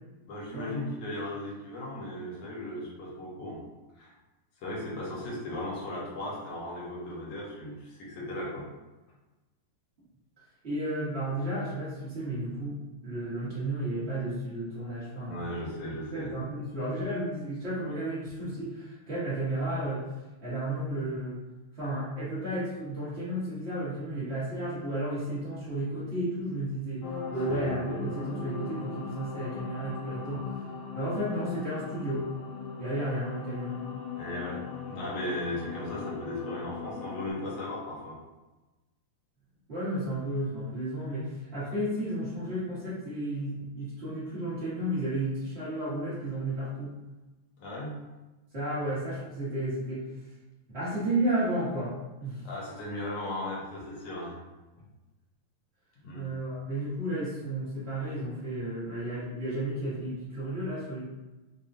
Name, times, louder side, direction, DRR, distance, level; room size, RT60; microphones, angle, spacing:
voice 1, 0.3-3.6 4.0-4.1 4.6-8.6 15.3-16.3 27.3-27.6 34.2-34.6 34.9-38.2 47.6-48.0 48.8-48.9 52.4-54.4 56.0-56.3, left 1 dB, 60° left, -5 dB, 1.7 m, -36 dB
voice 2, 10.6-15.3 16.1-20.1 20.4-21.4 21.7-27.0 27.3-30.5 30.9-32.3 32.8-33.8 39.7-46.9 48.5-50.0 50.7-51.9 52.2-52.5 56.1-61.0, right 1 dB, 60° right, -12 dB, 0.6 m, -32 dB
sound 1, 27.0-37.3, left 5 dB, 80° left, 1.9 m, -39 dB
5.2 x 2.3 x 2.6 m, 1.1 s
omnidirectional pair, 3.4 m